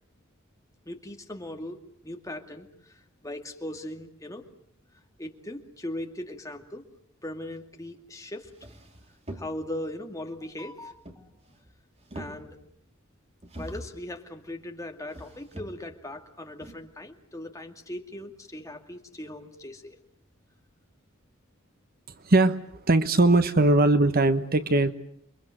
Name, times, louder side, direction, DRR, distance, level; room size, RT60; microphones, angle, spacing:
voice 1, 0.9-1.8 2.0-4.4 5.2-6.8 7.2-8.5 9.3-11.3 12.1-12.6 13.5-20.0, left 1 dB, 15° left, 2.3 m, -39 dB
sound 1, 8.0-8.1 8.4-9.9 10.9-11.7 12.0-12.8 13.4-14.1 15.1-16.0 16.6-16.7, right 1 dB, 30° right, 2.8 m, -43 dB
voice 2, 22.2-24.9, right 2 dB, 45° right, 1.2 m, -20 dB
28.5 x 23.0 x 7.8 m
head